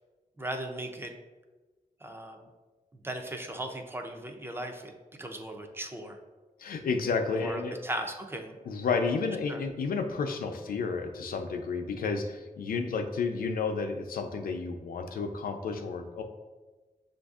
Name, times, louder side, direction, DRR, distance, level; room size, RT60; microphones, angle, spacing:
voice 1, 0.4-1.1 2.0-2.5 3.0-4.9 5.2-6.2 7.3-8.6 9.5-9.6, right 1 dB, 15° right, 4 dB, 0.3 m, -37 dB
voice 2, 6.6-7.8 8.7-16.2, left 4 dB, 80° left, 5 dB, 0.5 m, -31 dB
7.0 x 2.5 x 2.3 m, 1.2 s
wide cardioid pair, 175°, 15 cm